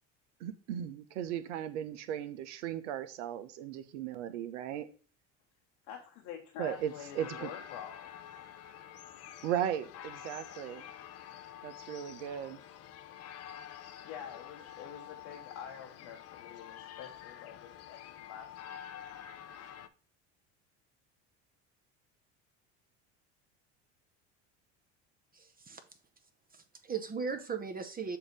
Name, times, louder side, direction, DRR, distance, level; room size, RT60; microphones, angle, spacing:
voice 1, 0.4-4.9 6.6-7.5 9.4-10.9 11.6-12.6, right 10 dB, 85° right, 0.8 m, -37 dB
voice 2, 5.9-8.1 14.0-18.5, left 8 dB, 75° left, 1.1 m, -47 dB
sound 1, 6.6-19.9, left 10 dB, 45° left, 0.6 m, -48 dB
voice 3, 25.3-25.8 26.5-28.2, right 5 dB, 25° right, 0.7 m, -38 dB
7.0 x 2.8 x 5.2 m
supercardioid pair, 85°, 35 cm